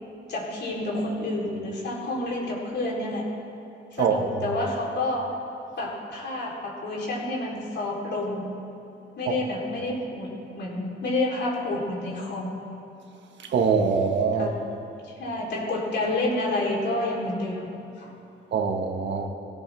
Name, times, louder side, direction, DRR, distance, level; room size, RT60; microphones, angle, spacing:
voice 1, 0.3-3.3 3.9-5.3 5.8-8.5 9.2-10.3 10.5-12.5 14.4-14.6 15.1-17.7 18.0-18.1, left 2 dB, 60° left, -3 dB, 3.8 m, -29 dB
voice 2, 13.5-14.5 18.5-19.3, right 5 dB, 65° right, 3 dB, 1.6 m, -23 dB
19.0 x 16.0 x 3.6 m, 2.7 s
cardioid pair, 90°, 20 cm